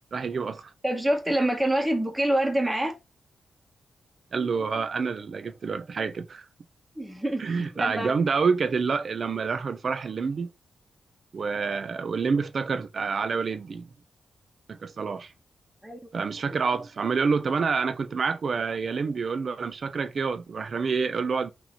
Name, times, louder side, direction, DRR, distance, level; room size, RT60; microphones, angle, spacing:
voice 1, 0.1-0.7 4.3-6.5 7.4-10.5 11.3-13.9 14.7-15.3 16.1-21.5, right 5 dB, 55° right, 0.4 m, -28 dB
voice 2, 0.8-3.0 7.0-8.1 15.8-16.0, right 1 dB, 10° right, 0.9 m, -26 dB
3.0 x 2.7 x 4.0 m
cardioid pair, 80°, 0 cm